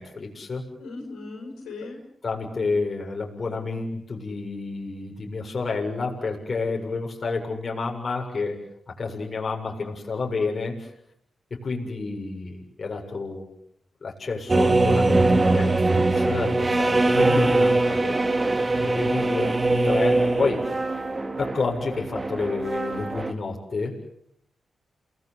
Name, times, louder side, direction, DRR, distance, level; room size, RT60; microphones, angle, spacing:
voice 1, 0.0-0.7 2.2-10.9 11.5-13.5 14.0-18.2 18.7-20.7 21.4-24.0, left 4 dB, 50° left, 1 dB, 7.3 m, -30 dB
voice 2, 0.8-2.0 18.8-19.2, left 3 dB, 90° left, 0 dB, 6.4 m, -38 dB
sound 1, 14.5-23.3, right 2 dB, 35° right, 3.1 m, -22 dB
29.0 x 20.5 x 8.3 m, 0.71 s
supercardioid pair, 45°, 0 cm